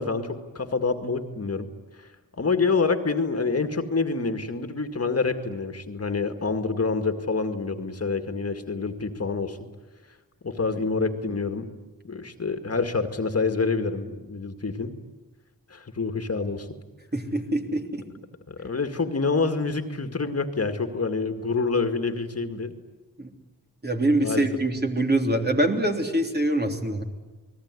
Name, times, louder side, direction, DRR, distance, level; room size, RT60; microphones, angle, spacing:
voice 1, 0.0-1.7 2.0-2.1 2.4-9.6 10.4-11.7 12.0-14.9 15.7-16.7 18.5-22.7 24.2-24.5, left 4 dB, 45° left, 7 dB, 2.1 m, -27 dB
voice 2, 17.1-18.1 23.2-23.3 23.8-27.0, right 1 dB, 30° right, 3 dB, 3.4 m, -24 dB
29.5 x 20.5 x 9.8 m, 1.1 s
wide cardioid pair, 120°, 35 cm